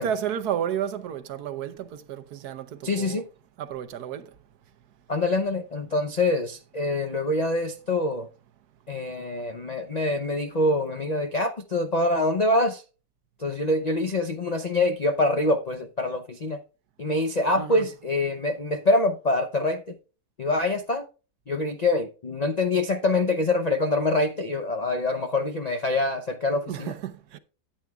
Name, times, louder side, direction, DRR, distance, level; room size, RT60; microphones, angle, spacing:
voice 1, 0.0-3.2 3.6-4.3 17.5-17.8 26.6-27.4, right 9 dB, 70° right, 1.3 m, -32 dB
voice 2, 2.8-3.3 5.1-8.3 8.9-12.8 13.4-16.6 17.0-19.9 20.4-21.0 21.5-26.9, left 2 dB, 70° left, 0.3 m, -25 dB
13.0 x 8.6 x 2.3 m
omnidirectional pair, 1.9 m